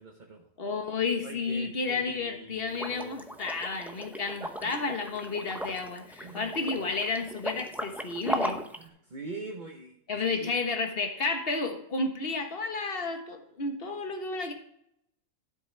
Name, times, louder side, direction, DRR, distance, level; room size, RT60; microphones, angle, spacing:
voice 1, 0.0-0.8 1.2-3.3 4.4-4.7 6.2-6.5 8.7-10.5, right 3 dB, 35° right, 3 dB, 1.0 m, -44 dB
voice 2, 0.6-8.6 10.1-14.5, left 4 dB, 40° left, 5 dB, 1.5 m, -32 dB
Liquid, 2.7-8.8, equal, ahead, 0.3 m, -37 dB
13.0 x 7.9 x 3.4 m, 0.74 s
omnidirectional pair, 1.5 m